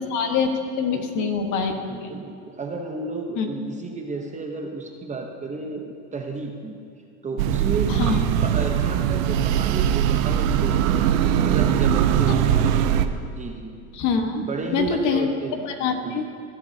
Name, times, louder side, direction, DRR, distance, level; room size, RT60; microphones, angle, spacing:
voice 1, 0.0-2.1 3.4-3.5 7.9-8.2 12.3-12.4 13.9-14.4 14.7-15.3 15.6-16.2, left 6 dB, 45° left, 5 dB, 1.4 m, -25 dB
voice 2, 1.9-6.8 7.2-12.9 13.4-13.7 14.4-15.6 16.0-16.2, right 4 dB, 15° right, 2 dB, 0.9 m, -32 dB
sound 1, 7.4-13.1, right 9 dB, 75° right, 0.8 m, -21 dB
20.0 x 11.5 x 2.8 m, 2.4 s
supercardioid pair, 130°, 41 cm